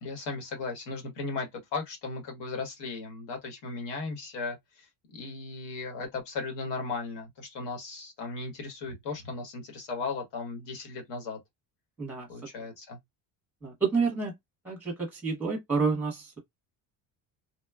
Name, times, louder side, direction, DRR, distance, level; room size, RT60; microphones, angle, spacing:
voice 1, 0.0-11.4 12.3-13.0, left 4 dB, 70° left, 1.3 m, -36 dB
voice 2, 13.6-14.3 14.6-16.4, right 4 dB, 5° right, 0.8 m, -29 dB
3.0 x 2.2 x 2.3 m
cardioid pair, 165°, 44 cm